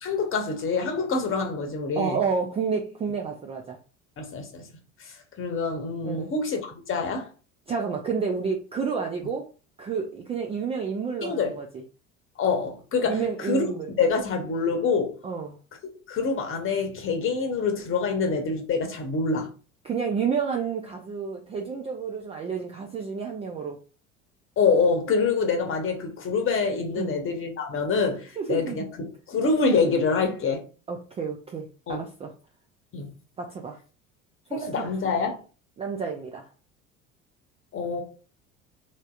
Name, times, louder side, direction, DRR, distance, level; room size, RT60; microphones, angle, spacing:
voice 1, 0.0-2.2 4.2-4.6 5.0-7.3 11.2-11.5 12.4-13.7 13.9-15.2 16.1-19.5 24.6-30.6 31.9-32.1 32.9-33.1 34.5-35.4 37.7-38.0, left 4 dB, 30° left, 0.9 m, -26 dB
voice 2, 2.0-3.8 6.0-6.3 7.7-9.5 9.8-11.8 13.1-13.9 15.2-15.6 19.8-23.8 27.0-27.2 28.4-28.9 30.9-32.3 33.4-33.8 34.5-34.9 35.8-36.4, right 6 dB, 15° right, 0.3 m, -30 dB
3.1 x 2.7 x 2.4 m
figure-of-eight pair, 65°, 40 cm